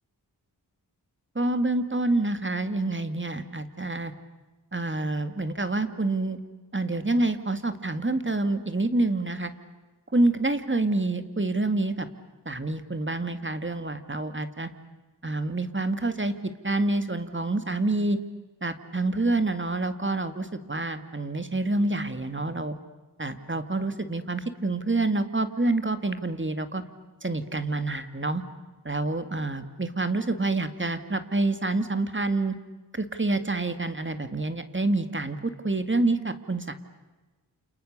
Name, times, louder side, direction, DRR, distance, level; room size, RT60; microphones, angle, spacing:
voice 1, 1.4-4.1 4.7-6.4 6.7-9.5 10.1-12.1 12.5-14.7 15.2-16.3 16.6-18.2 18.6-22.8 23.2-26.8 27.2-28.4 28.8-32.6 32.9-36.7, right 2 dB, 30° right, 10 dB, 2.1 m, -27 dB
29.0 x 29.0 x 6.7 m, 1.2 s
wide cardioid pair, 55°, 40 cm